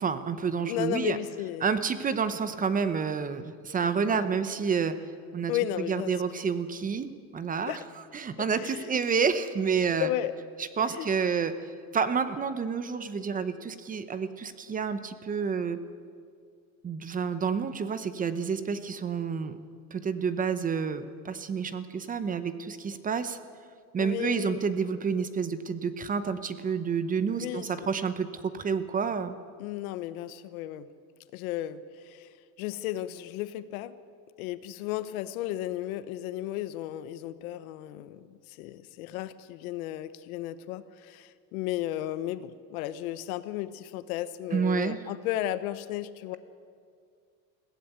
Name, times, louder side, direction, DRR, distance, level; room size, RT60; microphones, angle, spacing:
voice 1, 0.0-1.2 1.6-5.0 5.3-5.5 5.9-7.8 8.1-10.1 10.8-11.5 11.9-15.8 16.8-19.6 19.9-23.4 23.9-29.3 44.5-45.0, right 6 dB, 20° right, 12 dB, 0.8 m, -29 dB
voice 2, 0.7-1.7 4.1-4.2 5.5-6.1 7.7-7.8 8.4-9.0 10.0-10.3 10.9-11.1 24.0-24.6 27.3-27.9 29.6-30.9 31.3-33.9 34.4-46.4, left 13 dB, 85° left, 14 dB, 1.1 m, -34 dB
21.5 x 16.0 x 8.0 m, 2.2 s
supercardioid pair, 140°, 42 cm